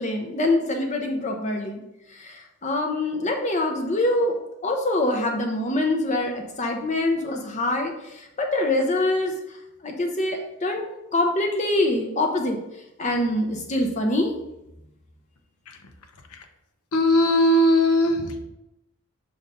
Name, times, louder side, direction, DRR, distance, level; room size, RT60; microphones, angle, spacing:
voice 1, 0.0-1.8 2.1-4.4 4.6-9.3 9.8-12.6 13.0-14.3, left 1 dB, 30° left, 3 dB, 0.6 m, -24 dB
voice 2, 16.9-18.4, left 1 dB, 90° left, 5 dB, 0.9 m, -19 dB
5.5 x 3.8 x 5.3 m, 0.90 s
head